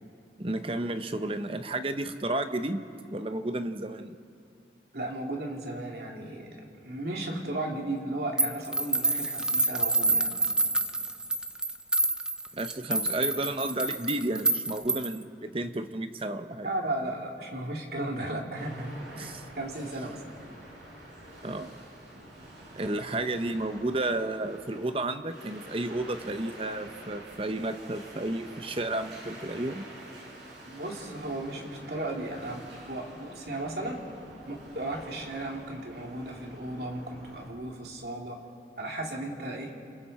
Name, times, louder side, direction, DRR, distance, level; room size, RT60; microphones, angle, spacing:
voice 1, 0.4-2.8 3.1-4.2 12.5-16.7 19.2-19.5 21.4-21.7 22.7-29.8, right 2 dB, 30° right, 9 dB, 0.8 m, -32 dB
voice 2, 4.9-6.6 6.9-10.5 16.6-20.2 30.6-34.0 34.5-38.4 38.8-39.7, right 1 dB, 65° right, 0 dB, 2.8 m, -35 dB
sound 1, 8.4-15.2, right 3 dB, 5° right, 0.5 m, -28 dB
sound 2, 18.6-37.5, right 1 dB, 85° right, 7.3 m, -47 dB
28.0 x 27.5 x 4.3 m, 2.5 s
head